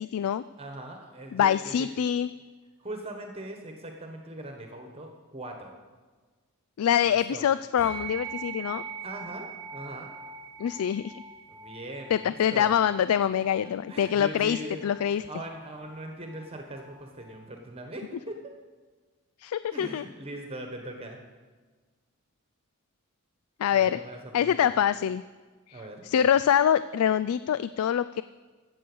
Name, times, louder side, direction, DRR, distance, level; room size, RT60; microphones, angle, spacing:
voice 1, 0.0-0.4 1.3-2.3 6.8-8.8 10.6-11.1 12.1-15.2 19.4-20.1 23.6-24.0 24.3-25.2 25.7-28.2, left 9 dB, 80° left, 14 dB, 0.3 m, -25 dB
voice 2, 0.6-1.7 2.8-5.8 7.1-7.5 9.0-10.1 11.5-12.7 13.6-18.5 19.7-21.2 23.7-24.7 25.7-26.0, right 1 dB, 30° right, 3 dB, 1.4 m, -41 dB
sound 1, 7.8-17.5, right 5 dB, 15° left, 4.9 m, -43 dB
15.0 x 7.9 x 6.3 m, 1.4 s
head